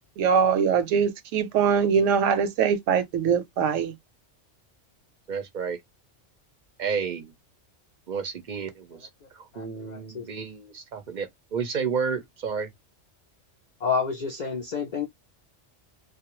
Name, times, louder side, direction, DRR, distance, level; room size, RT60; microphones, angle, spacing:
voice 1, 0.2-3.9, right 7 dB, 85° right, 0.9 m, -22 dB
voice 2, 5.3-5.8 6.8-7.3 8.1-9.1 9.3-12.7, right 6 dB, 55° right, 0.5 m, -31 dB
voice 3, 9.5-10.3 13.8-15.1, left 5 dB, 60° left, 0.4 m, -29 dB
2.3 x 2.1 x 2.9 m
omnidirectional pair, 1.3 m